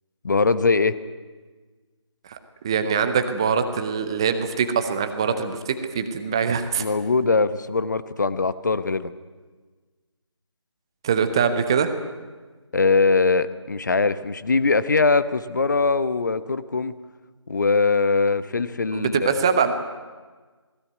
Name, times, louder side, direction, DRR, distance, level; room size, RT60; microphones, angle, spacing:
voice 1, 0.2-1.0 6.8-9.1 12.7-16.9 17.5-19.2, left 4 dB, 40° left, 14 dB, 0.9 m, -21 dB
voice 2, 2.6-6.9 11.0-11.9 18.9-19.7, right 6 dB, 10° right, 9 dB, 0.6 m, -23 dB
21.0 x 17.5 x 9.4 m, 1.4 s
figure-of-eight pair, 160°, 15 cm